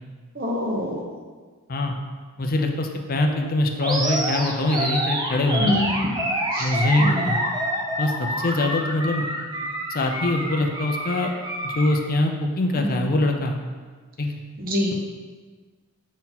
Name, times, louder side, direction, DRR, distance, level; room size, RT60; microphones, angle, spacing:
voice 1, 0.3-1.0 5.6-6.0 6.5-6.7 7.0-7.3 12.8-13.1 14.6-14.9, left 1 dB, 40° right, 0 dB, 1.0 m, -26 dB
voice 2, 2.4-5.8 6.6-7.4 8.0-9.3 9.6-11.3 11.6-13.6 14.2-14.3, left 2 dB, 40° left, 3 dB, 0.5 m, -23 dB
Animal, 3.8-12.0, right 1 dB, 20° right, 0.7 m, -27 dB
7.0 x 4.3 x 4.0 m, 1.5 s
head